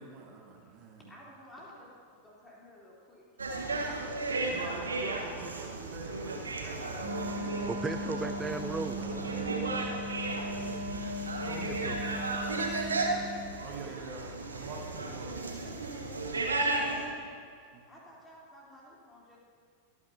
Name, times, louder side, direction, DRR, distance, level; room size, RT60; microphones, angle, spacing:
voice 1, 0.0-1.1 4.5-7.7 9.0-9.6 11.4-11.7 13.6-15.3 17.7-17.8, right 4 dB, 40° right, 1 dB, 1.5 m, -45 dB
voice 2, 0.6-3.2 3.5-4.9 11.8-12.2 13.6-14.0 17.9-19.4, left 1 dB, 10° left, -5 dB, 3.6 m, -53 dB
sound 1, 3.4-17.1, right 3 dB, 75° right, 1.4 m, -34 dB
Wind instrument woodwind instrument, 6.9-13.6, equal, 90° right, 3.5 m, -38 dB
voice 3, 7.6-9.0 11.6-12.0, right 3 dB, 10° right, 9 dB, 0.3 m, -36 dB
23.5 x 9.6 x 2.9 m, 2.2 s
figure-of-eight pair, 90°, 0 cm